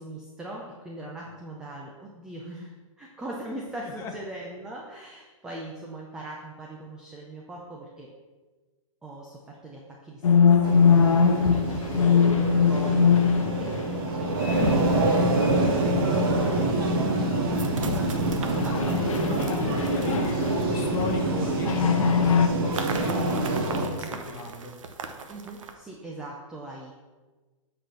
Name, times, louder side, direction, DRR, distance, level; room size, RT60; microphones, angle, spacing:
voice 1, 0.0-8.1 9.0-12.4 12.7-19.9 24.1-24.2 25.3-26.9, right 2 dB, 5° right, -2 dB, 0.4 m, -41 dB
sound 1, 10.2-15.1 15.4-17.0 17.3-17.5 17.8-21.3 21.6-22.5, left 6 dB, 75° left, 0.8 m, -23 dB
sound 2, 10.6-23.9, right 2 dB, 45° right, 1.4 m, -26 dB
voice 2, 11.7-12.3 19.3-24.7, left 3 dB, 15° left, 2 dB, 0.8 m, -37 dB
sound 3, 17.5-21.4 22.7-25.8, right 5 dB, 70° right, 1.0 m, -40 dB
7.8 x 4.3 x 6.3 m, 1.3 s
hypercardioid pair, 165°, 17 cm